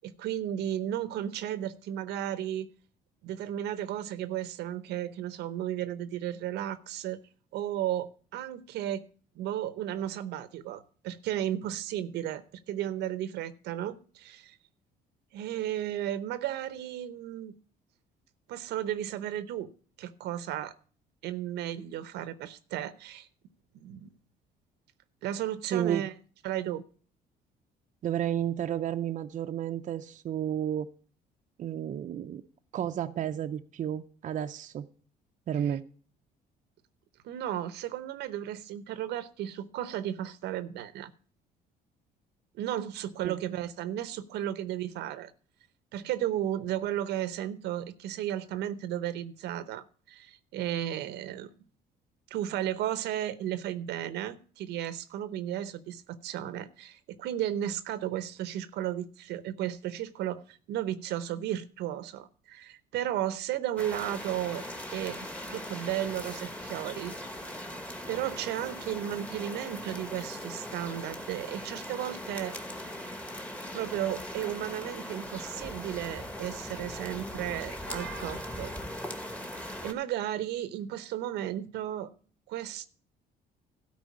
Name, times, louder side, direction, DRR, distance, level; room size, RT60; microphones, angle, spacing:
voice 1, 0.0-2.7 3.2-7.2 7.5-9.0 9.4-14.6 15.3-17.6 18.5-19.7 20.0-20.7 21.2-23.3 23.8-24.1 25.2-26.1 26.4-26.8 35.6-35.8 37.2-41.1 42.5-45.3 45.9-51.5 52.3-64.6 64.9-65.2 65.5-67.1 68.1-72.6 73.7-78.7 79.8-82.1 82.5-82.9, right 11 dB, 80° right, 0.8 m, -34 dB
voice 2, 25.7-26.0 28.0-30.9 31.6-32.4 32.7-34.9 35.5-35.8 43.2-43.4, right 10 dB, 50° right, 0.6 m, -31 dB
sound 1, 63.8-79.9, left 1 dB, 10° left, 1.3 m, -40 dB
12.5 x 4.4 x 8.4 m
cardioid pair, 110°, 17 cm